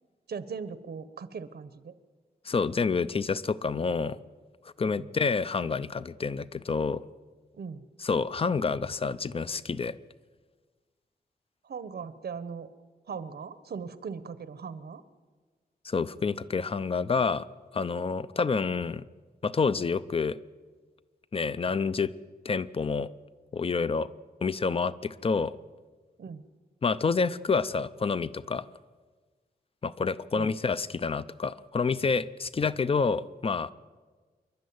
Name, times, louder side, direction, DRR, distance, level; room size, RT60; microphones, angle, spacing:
voice 1, 0.3-1.9 4.9-5.1 7.5-7.8 11.6-12.7 13.1-15.0 26.2-26.4 30.3-30.5, right 6 dB, 80° right, 14 dB, 1.1 m, -39 dB
voice 2, 2.4-4.2 4.8-7.0 8.0-10.0 15.8-17.5 17.7-19.0 19.4-20.4 21.3-22.1 22.4-23.1 23.5-24.1 24.4-25.6 26.8-28.7 29.8-33.7, left 5 dB, 35° left, 16 dB, 0.6 m, -28 dB
27.0 x 11.5 x 9.5 m, 1.4 s
wide cardioid pair, 165°, 16 cm